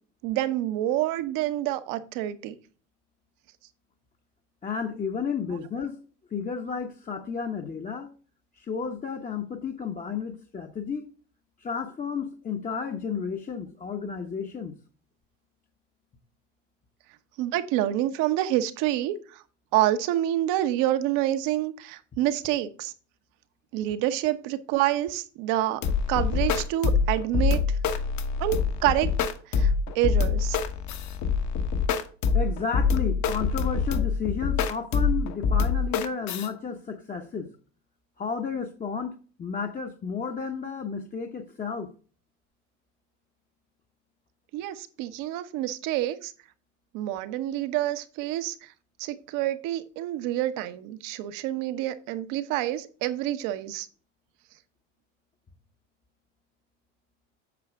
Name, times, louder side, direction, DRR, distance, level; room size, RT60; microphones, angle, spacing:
voice 1, 0.2-2.6 17.4-19.4 19.7-22.9 23.7-25.8 26.1-27.8 28.4-29.1 29.5-30.6 44.5-46.3 46.9-48.7 49.0-53.9, right 13 dB, 60° right, 1.1 m, -27 dB
voice 2, 4.6-6.0 6.3-8.1 8.5-11.1 11.6-14.7 32.3-37.5 38.2-41.9, left 6 dB, 20° left, 0.9 m, -32 dB
sound 1, 25.8-36.5, left 5 dB, 50° left, 1.2 m, -25 dB
8.5 x 5.7 x 3.6 m
hypercardioid pair, 85°, 36 cm